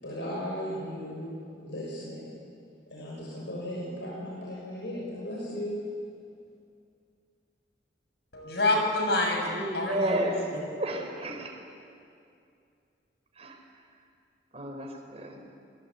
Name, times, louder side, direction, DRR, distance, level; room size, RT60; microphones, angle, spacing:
voice 1, 0.0-1.3 1.6-2.3 2.9-5.8, equal, 90° left, 6.5 m, -36 dB
voice 2, 8.3-10.6, left 2 dB, 70° left, 7.1 m, -28 dB
voice 3, 9.4-10.4 10.8-11.5 13.4-13.5 14.5-15.4, right 1 dB, 35° right, 4.8 m, -32 dB
29.0 x 23.5 x 8.6 m
head